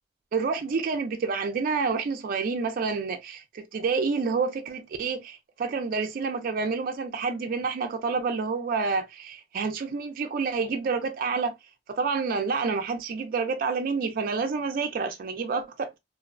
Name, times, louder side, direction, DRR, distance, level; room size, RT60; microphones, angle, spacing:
voice 1, 0.3-11.6 11.9-16.0, right 4 dB, 50° right, 0.4 m, -28 dB
2.5 x 2.0 x 2.4 m
head